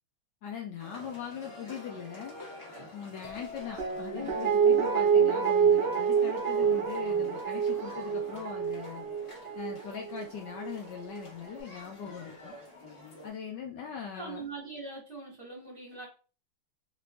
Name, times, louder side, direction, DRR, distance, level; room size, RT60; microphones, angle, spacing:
voice 1, 0.4-2.3 2.9-9.1 9.5-12.5 13.2-14.4, left 7 dB, 80° left, 2 dB, 0.9 m, -41 dB
sound 1, 0.8-13.3, left 1 dB, 35° left, 1.1 m, -49 dB
sound 2, 3.2-6.9, left 6 dB, 50° left, 0.8 m, -51 dB
Guitar, 3.8-10.8 11.1-11.2, right 7 dB, 70° right, 0.5 m, -27 dB
voice 2, 14.1-16.1, right 4 dB, 35° right, -3 dB, 1.0 m, -42 dB
3.4 x 2.9 x 2.4 m, 0.37 s
omnidirectional pair, 2.4 m